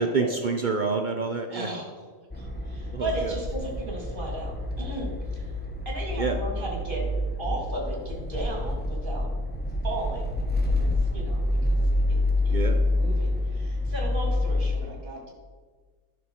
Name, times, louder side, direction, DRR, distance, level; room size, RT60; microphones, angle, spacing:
voice 1, 0.0-1.7 2.9-3.4 6.2-6.4 12.5-12.8, right 4 dB, 65° right, 5 dB, 0.4 m, -27 dB
voice 2, 1.5-2.0 2.3-5.5 5.9-7.1 7.4-9.3 9.8-10.3 10.6-10.9 11.1-12.2 12.4-12.6 12.9-15.3, right 1 dB, 35° right, -1 dB, 2.3 m, -35 dB
sound 1, 2.3-14.8, left 1 dB, 10° left, 0.6 m, -27 dB
11.0 x 6.2 x 4.4 m, 1.5 s
omnidirectional pair, 1.5 m